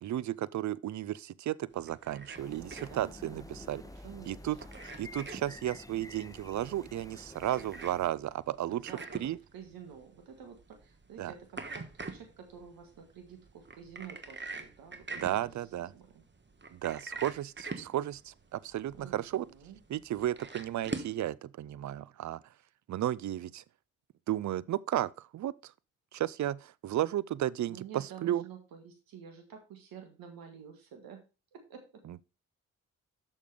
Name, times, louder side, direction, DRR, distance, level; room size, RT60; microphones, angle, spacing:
voice 1, 0.0-3.8 4.3-4.6 4.9-9.4 11.2-11.3 15.2-15.9 16.7-19.4 19.9-22.4 22.9-23.6 24.3-25.7 26.1-28.4, right 12 dB, 55° right, 0.5 m, -34 dB
sound 1, 1.7-21.2, right 4 dB, 30° right, 1.2 m, -45 dB
sound 2, 2.3-8.1, left 2 dB, 10° left, 0.7 m, -49 dB
voice 2, 2.8-3.5 4.0-4.6 8.7-9.1 9.5-16.2 18.9-19.8 27.7-31.2 31.5-32.1, right 7 dB, 85° right, 1.5 m, -50 dB
6.5 x 5.4 x 5.2 m
supercardioid pair, 45°, 34 cm